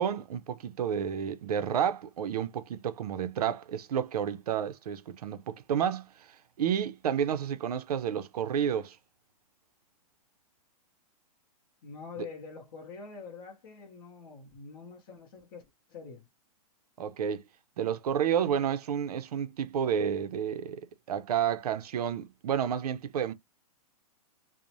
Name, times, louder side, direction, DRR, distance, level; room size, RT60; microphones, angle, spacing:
voice 1, 0.0-6.1 6.6-9.0 17.0-17.4 17.8-20.8 21.1-23.3, right 8 dB, 75° right, 0.5 m, -30 dB
voice 2, 11.8-16.3, left 5 dB, 35° left, 0.7 m, -45 dB
2.5 x 2.0 x 2.9 m
hypercardioid pair, 170°, 19 cm